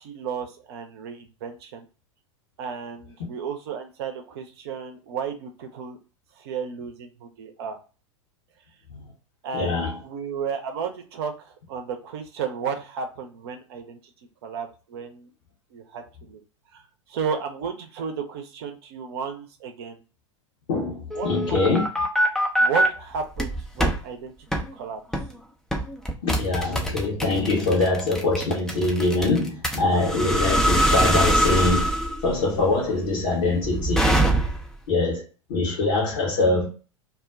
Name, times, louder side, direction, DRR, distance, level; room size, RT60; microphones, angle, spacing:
voice 1, 0.0-1.9 2.6-6.0 6.4-7.8 9.4-14.0 14.4-15.3 15.7-16.4 16.7-16.8 17.1-20.0 21.1-21.3 21.7-21.8 22.6-25.0, right 6 dB, 50° right, 0.6 m, -33 dB
voice 2, 9.5-9.9 20.7-21.9 26.2-31.9 32.2-34.1 34.9-35.2 35.5-36.7, left 2 dB, 55° left, 1.0 m, -23 dB
sound 1, 21.1-22.9 23.4-24.0 24.5-24.7 25.1-25.3 25.7-34.8, right 1 dB, 5° left, 0.5 m, -23 dB
2.4 x 2.2 x 3.5 m
figure-of-eight pair, 90°, 16 cm